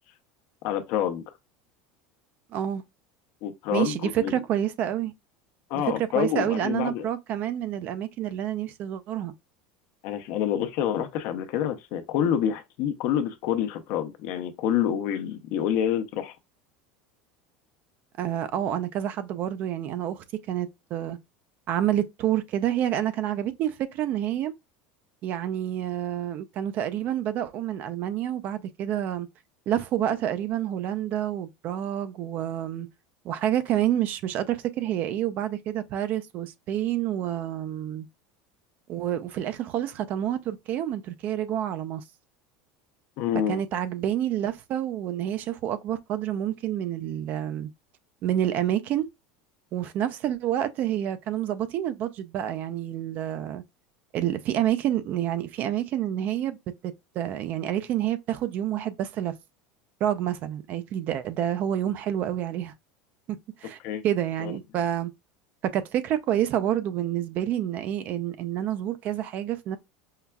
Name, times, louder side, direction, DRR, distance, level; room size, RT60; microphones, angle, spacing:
voice 1, 0.6-1.2 3.4-4.4 5.7-7.0 10.0-16.3 43.2-43.6 63.8-64.0 64.4-64.5, left 10 dB, 55° left, 0.7 m, -27 dB
voice 2, 2.5-2.8 3.7-5.1 5.7-9.3 18.2-21.2 21.7-24.5 25.2-29.3 29.7-32.9 33.2-38.1 38.9-42.0 43.5-47.7 48.2-49.1 49.7-53.6 54.1-56.6 56.8-59.3 60.0-62.7 63.6-65.1 65.6-69.8, right 11 dB, 40° right, 0.5 m, -28 dB
5.5 x 2.3 x 2.2 m
supercardioid pair, 150°, 4 cm